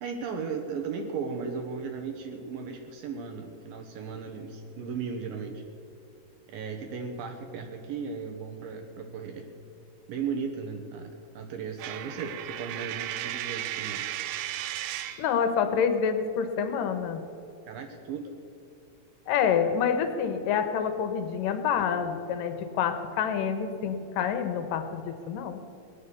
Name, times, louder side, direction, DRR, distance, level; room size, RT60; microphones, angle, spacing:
voice 1, 0.0-5.6 6.5-9.5 10.1-11.1 11.3-14.1 17.7-18.3, right 5 dB, 70° right, 4 dB, 2.5 m, -36 dB
Coin (dropping), 11.8-15.3, right 12 dB, 90° right, 2.9 m, -35 dB
voice 2, 15.2-17.2 19.3-25.6, left 7 dB, 70° left, 9 dB, 2.3 m, -27 dB
18.0 x 11.0 x 6.9 m, 2.7 s
omnidirectional pair, 4.7 m